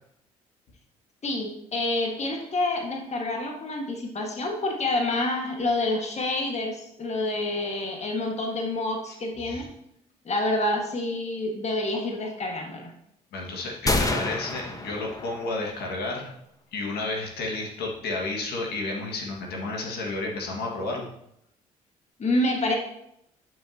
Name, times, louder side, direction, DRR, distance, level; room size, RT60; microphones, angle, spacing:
voice 1, 1.2-9.7 10.2-12.9 22.2-22.8, left 2 dB, 40° left, 1 dB, 1.7 m, -28 dB
voice 2, 13.3-16.3 16.7-21.1, left 2 dB, 65° left, -1 dB, 1.9 m, -31 dB
sound 1, 13.9-15.7, left 2 dB, 20° left, 1.2 m, -28 dB
11.0 x 6.2 x 2.9 m, 0.76 s
hypercardioid pair, 55°, 18 cm